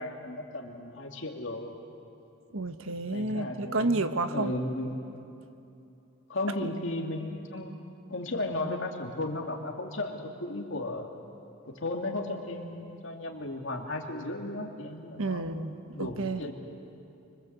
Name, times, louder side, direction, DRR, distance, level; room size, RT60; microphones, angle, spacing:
voice 1, 0.0-1.7 3.1-5.0 6.3-7.8 8.1-11.1 11.6-15.5 15.9-16.5, left 2 dB, 60° left, 2 dB, 2.6 m, -35 dB
voice 2, 2.5-4.5 6.6-6.7 15.2-16.4, right 2 dB, 75° right, 9 dB, 1.3 m, -30 dB
25.5 x 25.0 x 8.1 m, 2.7 s
head